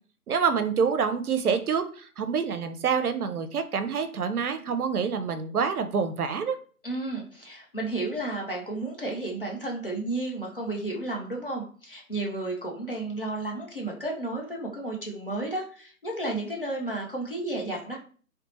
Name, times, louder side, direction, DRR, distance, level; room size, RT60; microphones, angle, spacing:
voice 1, 0.3-6.6, right 6 dB, 75° right, 9 dB, 0.5 m, -27 dB
voice 2, 6.8-18.0, right 2 dB, 40° left, -1 dB, 0.5 m, -32 dB
2.7 x 2.0 x 2.9 m, 0.42 s
figure-of-eight pair, 150°, 45 cm